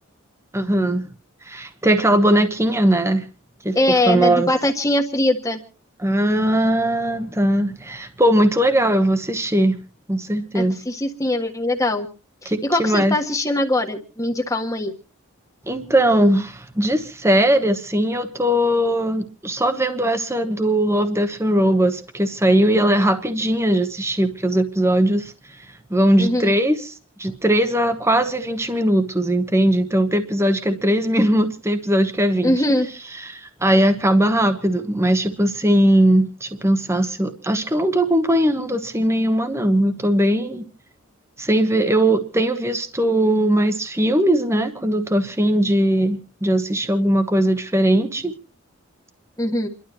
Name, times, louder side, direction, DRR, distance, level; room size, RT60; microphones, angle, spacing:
voice 1, 0.5-1.1 1.4-3.2 3.6-4.5 6.0-9.8 10.1-10.8 12.4-13.1 15.7-25.3 25.9-26.9 27.2-32.6 33.2-40.6 41.4-48.3, right 1 dB, 15° right, 8 dB, 1.1 m, -19 dB
voice 2, 3.7-5.6 10.5-12.1 12.4-14.9 26.2-26.6 32.4-32.9 49.4-49.7, left 1 dB, 15° left, 4 dB, 1.5 m, -21 dB
29.0 x 12.0 x 3.0 m, 0.37 s
head